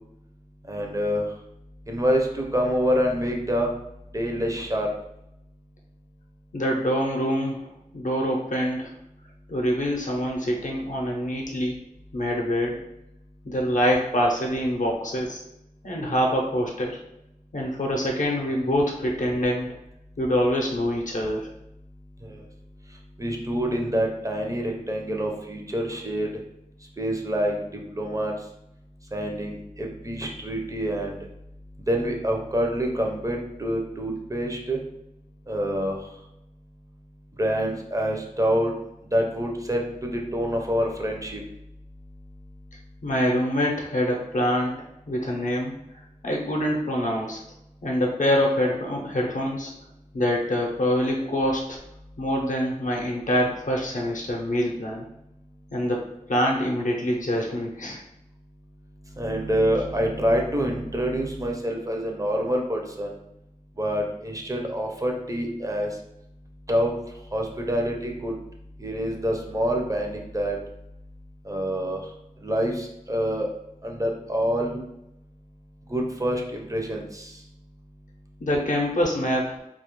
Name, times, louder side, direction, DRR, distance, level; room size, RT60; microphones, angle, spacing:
voice 1, 0.7-1.2 1.9-3.7 4.1-4.9 22.2-22.4 23.2-26.3 27.0-28.3 29.1-31.2 31.9-34.8 35.5-36.0 37.4-38.7 39.1-41.4 59.2-63.2 63.8-65.9 66.7-66.9 67.3-68.3 68.8-70.6 71.5-72.0 72.4-73.5 73.8-74.8 75.9-77.3, equal, 25° right, 1 dB, 0.5 m, -26 dB
voice 2, 6.5-7.6 7.9-8.9 9.5-11.8 12.1-12.8 13.4-15.4 15.8-17.0 17.5-19.7 20.2-21.5 43.0-44.7 45.1-45.7 46.2-47.4 47.8-49.7 50.1-51.8 52.2-55.1 55.7-56.0 56.3-58.0 78.4-79.6, equal, 65° left, -1 dB, 0.5 m, -25 dB
2.3 x 2.0 x 3.0 m, 0.83 s
wide cardioid pair, 45°, 14 cm